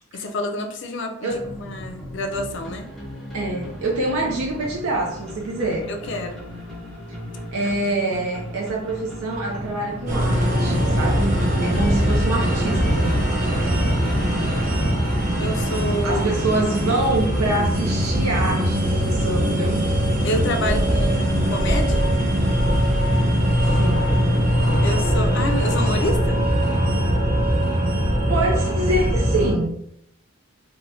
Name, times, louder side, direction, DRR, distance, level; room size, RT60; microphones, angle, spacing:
voice 1, 0.1-2.9 5.9-6.4 7.9-8.0 15.4-16.3 20.2-22.1 24.8-26.4, left 1 dB, 55° left, 5 dB, 0.4 m, -28 dB
sound 1, 1.3-14.9, equal, ahead, 0.7 m, -36 dB
voice 2, 3.3-5.9 7.5-13.2 16.0-19.8 23.7-24.5 28.3-29.8, right 2 dB, 80° right, -1 dB, 0.5 m, -25 dB
sound 2, 10.1-29.5, equal, 35° right, 0.7 m, -21 dB
3.1 x 2.1 x 2.7 m, 0.68 s
head